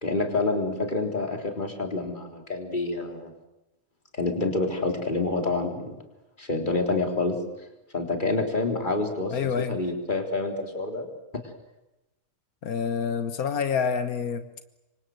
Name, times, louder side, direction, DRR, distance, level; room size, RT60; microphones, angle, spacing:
voice 1, 0.0-3.3 4.1-6.0 6.4-7.4 7.9-11.1, left 2 dB, 35° left, 4 dB, 3.9 m, -27 dB
voice 2, 9.3-9.8 12.6-14.4, left 6 dB, 90° left, 10 dB, 1.7 m, -27 dB
27.5 x 24.5 x 7.8 m, 0.94 s
omnidirectional pair, 1.5 m